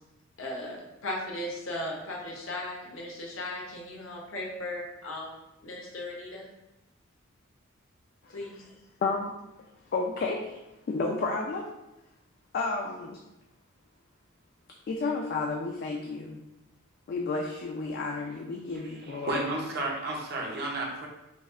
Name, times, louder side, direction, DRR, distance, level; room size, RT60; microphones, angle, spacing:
voice 1, 0.4-6.5 8.3-8.7, left 1 dB, 70° left, -2 dB, 0.7 m, -37 dB
voice 2, 9.0-9.4 9.9-10.6 10.9-11.7 12.5-13.2 14.9-16.4 17.1-19.6, left 3 dB, 50° left, 0 dB, 0.3 m, -31 dB
voice 3, 19.1-21.1, right 2 dB, 50° right, -1 dB, 0.7 m, -32 dB
5.0 x 2.0 x 2.4 m, 0.94 s
head